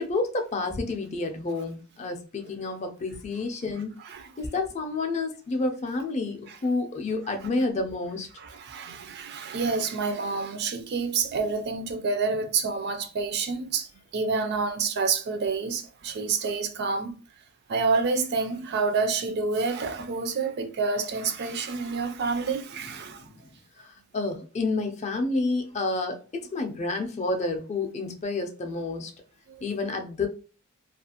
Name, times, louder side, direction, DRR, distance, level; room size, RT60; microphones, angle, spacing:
voice 1, 0.0-4.0 4.4-6.4 6.6-8.3 24.1-29.1 29.6-30.3, left 3 dB, 30° left, 0.4 m, -29 dB
voice 2, 8.4-17.2 17.7-23.2 29.5-29.6, right 4 dB, 50° right, 0.4 m, -28 dB
2.4 x 2.4 x 2.8 m
head